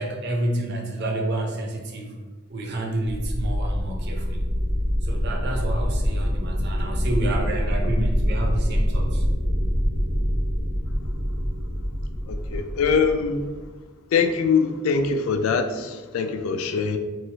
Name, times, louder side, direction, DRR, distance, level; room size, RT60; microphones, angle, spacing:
voice 1, 0.0-2.1 2.5-4.5 5.0-9.2, right 1 dB, 50° right, 1 dB, 0.5 m, -29 dB
sound 1, 3.0-13.6, equal, 30° left, 1.0 m, -25 dB
voice 2, 12.3-13.5 14.1-17.0, left 5 dB, 75° left, 7 dB, 0.3 m, -23 dB
3.0 x 2.8 x 2.8 m, 1.3 s
head